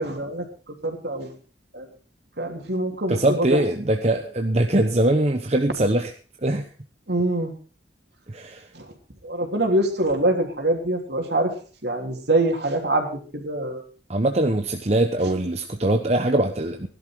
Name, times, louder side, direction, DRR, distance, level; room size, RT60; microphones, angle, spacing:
voice 1, 0.0-1.3 1.7-1.9 2.4-3.6 7.1-7.5 8.7-8.9 9.2-11.5 11.8-13.8, right 1 dB, 65° right, 3 dB, 3.4 m, -24 dB
voice 2, 3.1-6.1 6.4-6.7 8.3-8.6 14.1-16.9, right 1 dB, 35° right, 5 dB, 1.0 m, -22 dB
17.0 x 11.5 x 4.8 m, 0.39 s
head